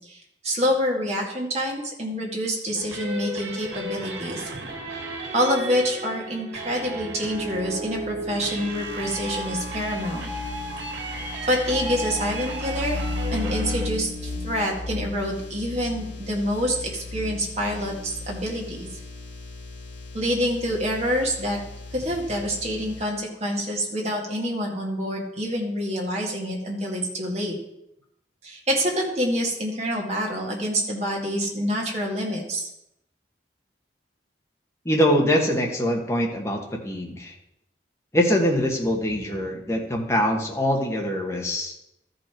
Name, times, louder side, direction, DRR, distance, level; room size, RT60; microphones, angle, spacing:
voice 1, 0.0-4.5 5.3-10.3 11.5-18.9 20.1-21.6 21.9-27.5 28.4-32.6, equal, 35° right, -1 dB, 1.9 m, -27 dB
sound 1, 2.8-13.9, right 2 dB, 85° right, 1.9 m, -34 dB
sound 2, 7.2-23.0, left 2 dB, 85° left, 2.6 m, -35 dB
voice 2, 34.8-37.3 38.1-41.7, equal, 15° left, 0 dB, 1.3 m, -23 dB
13.5 x 5.3 x 4.5 m, 0.81 s
head